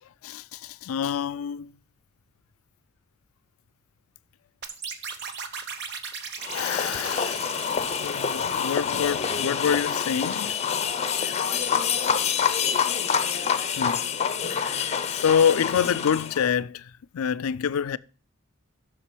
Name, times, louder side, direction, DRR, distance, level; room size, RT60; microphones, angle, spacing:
voice 1, 0.3-1.7 6.5-7.7 8.0-10.6 13.8-14.1 14.5-14.8 15.1-18.0, left 7 dB, 90° left, 0.4 m, -26 dB
sound 1, 4.6-9.4, right 6 dB, 55° right, 0.9 m, -38 dB
sound 2, 6.4-16.5, left 7 dB, 30° left, 0.6 m, -27 dB
7.3 x 6.3 x 6.0 m
head